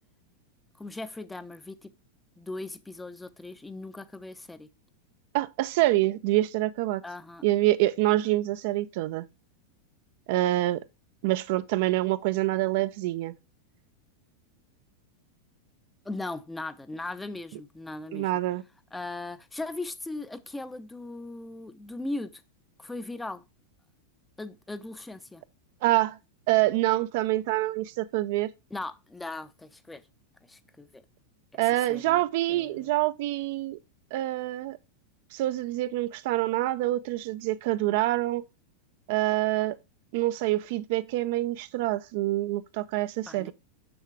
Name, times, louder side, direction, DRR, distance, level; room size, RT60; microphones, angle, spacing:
voice 1, 0.8-1.9 2.4-4.7 7.0-7.4 16.0-18.3 18.9-22.4 22.8-23.4 24.4-25.4 28.7-30.0 30.5-31.0 31.5-31.6 31.9-32.2 32.5-32.9 43.3-43.5, left 2 dB, 10° left, 0.6 m, -38 dB
voice 2, 5.3-7.0 7.4-9.3 10.3-10.8 11.2-13.3 18.1-18.6 25.8-26.2 26.5-28.5 31.6-33.8 34.1-34.8 35.3-38.4 39.1-39.8 40.1-43.5, right 16 dB, 50° right, 0.4 m, -26 dB
6.9 x 6.3 x 3.4 m
figure-of-eight pair, 90°, 0 cm